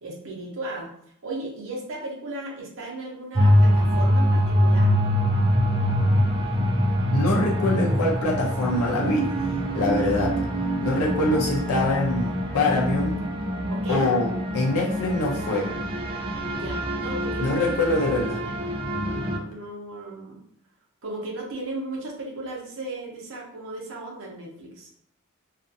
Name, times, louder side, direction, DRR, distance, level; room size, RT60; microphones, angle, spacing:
voice 1, 0.0-0.9 1.2-4.9 9.8-9.9 13.7-14.1 16.5-17.7 18.4-18.8 19.1-20.4 21.0-24.9, right 2 dB, 60° right, -2 dB, 0.8 m, -36 dB
sound 1, 3.3-19.4, equal, 25° right, 0.3 m, -24 dB
voice 2, 7.1-9.3 9.7-10.4 10.8-13.2 13.9-15.7 17.4-18.4, left 2 dB, 80° left, -2 dB, 0.6 m, -24 dB
2.5 x 2.4 x 2.6 m, 0.69 s
head